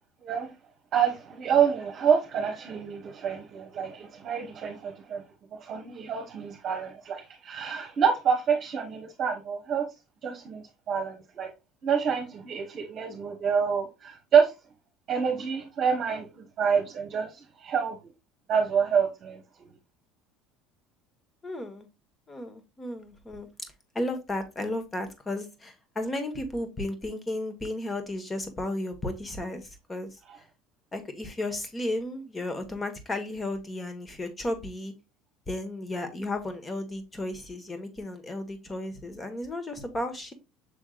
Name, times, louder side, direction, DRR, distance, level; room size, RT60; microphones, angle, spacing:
voice 1, 0.2-0.5 0.9-5.2 5.5-9.9 10.2-11.5 11.8-14.5 15.1-18.0 18.5-19.7, right 7 dB, 45° right, 1.0 m, -27 dB
voice 2, 21.4-21.9 22.3-23.5 23.9-30.2 30.9-34.9 35.5-40.3, left 1 dB, 20° left, 1.3 m, -34 dB
6.3 x 3.5 x 2.4 m
supercardioid pair, 100°, 0 cm